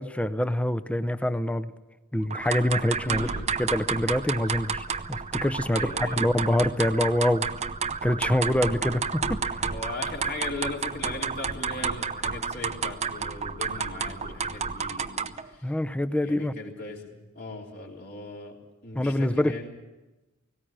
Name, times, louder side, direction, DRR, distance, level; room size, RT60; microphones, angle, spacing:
voice 1, 0.0-1.7 2.1-3.3 3.6-7.5 8.0-9.6 15.6-16.5 18.9-19.5, left 1 dB, 5° left, 11 dB, 0.6 m, -25 dB
sound 1, 2.3-15.5, right 5 dB, 30° right, 0.7 m, -31 dB
voice 2, 3.0-3.5 5.7-6.2 9.6-15.6 16.2-18.6 18.8-19.7, left 2 dB, 55° left, 0 dB, 3.4 m, -38 dB
18.5 x 17.5 x 8.9 m, 1.1 s
head